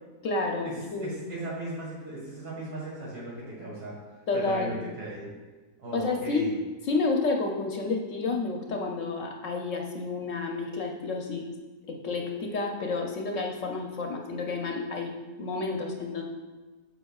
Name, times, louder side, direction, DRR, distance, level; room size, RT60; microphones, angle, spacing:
voice 1, 0.2-1.2 4.3-4.8 5.9-6.5 6.8-11.5 11.9-16.2, left 3 dB, 60° left, 1 dB, 1.0 m, -30 dB
voice 2, 1.0-4.0 4.3-5.3 5.8-6.5, right 1 dB, 70° right, -7 dB, 2.2 m, -37 dB
9.0 x 6.5 x 2.4 m, 1.3 s
omnidirectional pair, 1.7 m